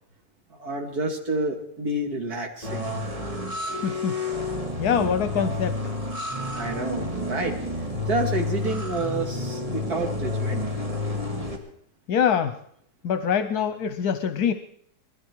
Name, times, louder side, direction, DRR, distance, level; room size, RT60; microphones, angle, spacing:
voice 1, 0.5-3.0 6.5-7.5 8.1-10.6, right 2 dB, 70° right, 2 dB, 2.9 m, -29 dB
sound 1, 2.6-11.6, left 2 dB, 20° right, 2.2 m, -30 dB
voice 2, 3.8-4.4 4.8-5.9 12.1-12.6 13.0-14.5, left 8 dB, 80° left, 10 dB, 1.3 m, -24 dB
20.5 x 14.5 x 4.7 m, 0.68 s
omnidirectional pair, 1.7 m